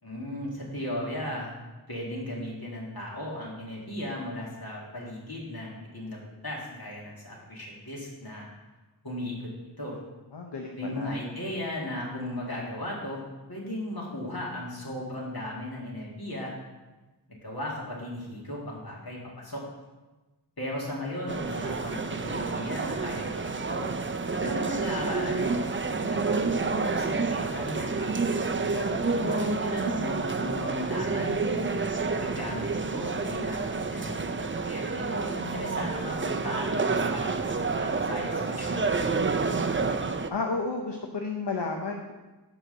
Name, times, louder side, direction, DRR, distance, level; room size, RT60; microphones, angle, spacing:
voice 1, 0.0-1.5 1.9-8.5 9.0-9.5 9.8-10.0 10.8-13.2 13.5-16.5 17.4-19.7 20.6-23.9 24.4-28.3 29.2-39.1, left 1 dB, 60° left, -4 dB, 2.3 m, -36 dB
voice 2, 10.3-11.2 28.6-29.4 40.3-42.1, left 3 dB, 80° left, 1 dB, 0.8 m, -33 dB
sound 1, 21.3-40.3, right 4 dB, 30° right, 0.5 m, -29 dB
5.8 x 4.9 x 6.6 m, 1.2 s
wide cardioid pair, 40°, 41 cm